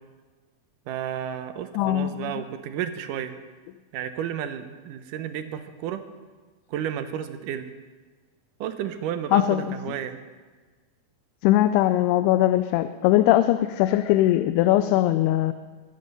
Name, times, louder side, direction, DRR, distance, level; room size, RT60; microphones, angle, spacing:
voice 1, 0.9-3.4 3.9-6.0 6.7-7.7 8.6-10.2, right 9 dB, 75° right, 9 dB, 2.0 m, -32 dB
voice 2, 1.7-2.3 9.3-9.8 11.4-15.5, left 14 dB, 90° left, 11 dB, 2.6 m, -20 dB
22.0 x 8.7 x 5.4 m, 1.4 s
omnidirectional pair, 4.5 m